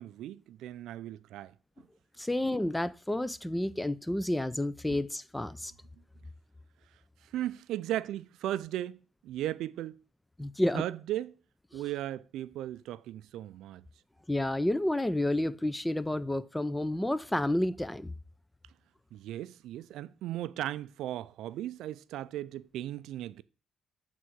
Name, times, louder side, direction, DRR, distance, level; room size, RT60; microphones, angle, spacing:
voice 1, 0.0-1.5 4.9-5.0 7.2-10.0 10.7-11.4 11.7-13.9 19.1-23.4, right 13 dB, 85° right, 0.4 m, -37 dB
voice 2, 2.2-5.7 10.4-10.8 14.3-18.1, left 1 dB, 10° left, 0.5 m, -30 dB
8.3 x 3.8 x 4.5 m
cardioid pair, 90°, 0 cm